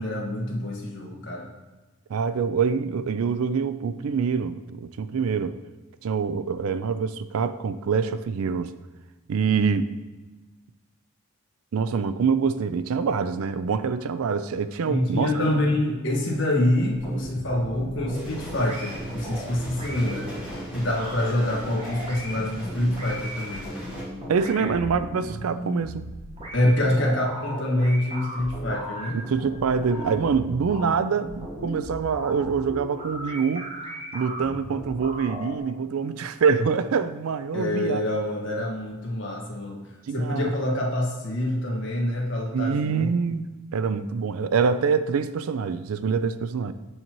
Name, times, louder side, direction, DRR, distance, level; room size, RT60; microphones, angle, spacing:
voice 1, 0.0-1.5 14.8-20.3 20.7-23.7 24.6-24.7 26.5-29.2 37.5-39.8 40.1-43.1, left 1 dB, 55° left, -1 dB, 1.4 m, -26 dB
voice 2, 2.1-5.5 6.0-8.7 9.3-9.9 11.7-15.4 24.3-26.1 26.8-26.9 29.1-38.0 40.1-40.5 42.5-43.5 43.7-46.7, right 5 dB, 75° right, 13 dB, 0.4 m, -25 dB
sound 1, 16.9-35.6, right 1 dB, 25° right, 1.3 m, -37 dB
sound 2, 18.1-24.0, equal, 5° right, 1.9 m, -41 dB
7.3 x 6.4 x 3.0 m, 1.2 s
head